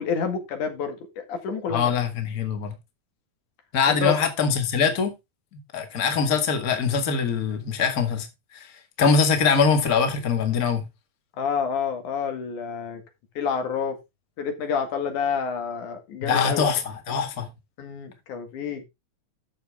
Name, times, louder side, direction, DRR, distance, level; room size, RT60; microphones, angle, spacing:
voice 1, 0.0-1.9 3.9-4.2 11.4-13.0 13.4-14.0 14.4-16.7 17.8-18.9, left 6 dB, 85° left, 3.5 m, -28 dB
voice 2, 1.7-2.7 3.7-5.1 5.5-8.3 8.5-8.7 9.0-10.8 16.2-17.5, left 5 dB, 35° left, 1.9 m, -23 dB
11.5 x 7.0 x 3.4 m
omnidirectional pair, 3.4 m